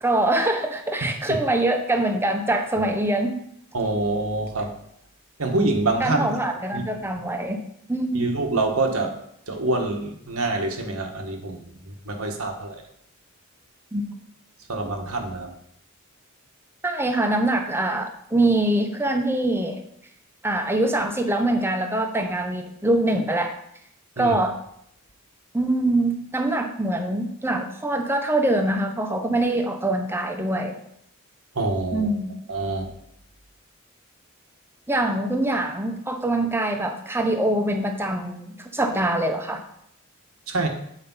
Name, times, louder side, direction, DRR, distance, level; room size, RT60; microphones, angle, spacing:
voice 1, 0.0-3.3 6.0-7.6 7.9-8.3 13.9-14.2 16.8-19.8 20.4-23.6 24.2-24.6 25.5-30.8 31.9-32.5 34.9-39.6, right 1 dB, 10° right, 5 dB, 0.8 m, -24 dB
voice 2, 1.0-1.4 2.8-2.9 3.7-4.7 5.4-6.3 6.7-6.8 8.1-9.2 9.5-11.8 12.1-12.8 14.7-15.5 24.2-24.4 31.5-32.1 32.5-32.9 40.5-40.7, right 2 dB, 85° right, 3 dB, 1.4 m, -26 dB
8.6 x 5.1 x 5.6 m, 0.71 s
head